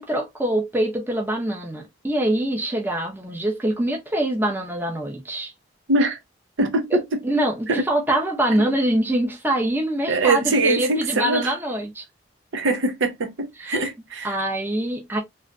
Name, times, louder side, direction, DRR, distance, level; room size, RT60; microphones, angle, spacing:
voice 1, 0.0-5.5 6.9-7.0 7.2-12.0 13.6-13.7 14.2-15.2, right 1 dB, 10° right, 0.7 m, -24 dB
voice 2, 5.9-6.2 6.6-7.2 7.7-7.8 10.1-11.5 12.5-14.4, right 2 dB, 75° right, 0.7 m, -22 dB
3.0 x 2.3 x 2.4 m
head